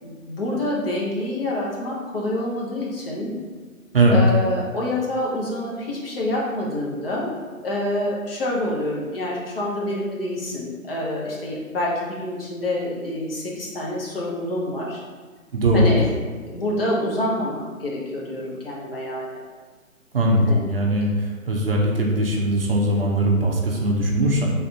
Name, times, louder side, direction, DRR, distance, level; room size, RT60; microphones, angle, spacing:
voice 1, 0.0-3.4 4.1-7.4 7.6-15.0 15.7-16.1 16.5-19.4 20.5-20.6, left 1 dB, 40° left, -4 dB, 0.9 m, -27 dB
voice 2, 15.5-15.8 20.1-21.1 21.5-24.5, right 1 dB, 45° right, -2 dB, 0.6 m, -20 dB
3.4 x 2.5 x 4.3 m, 1.4 s
figure-of-eight pair, 145°, 42 cm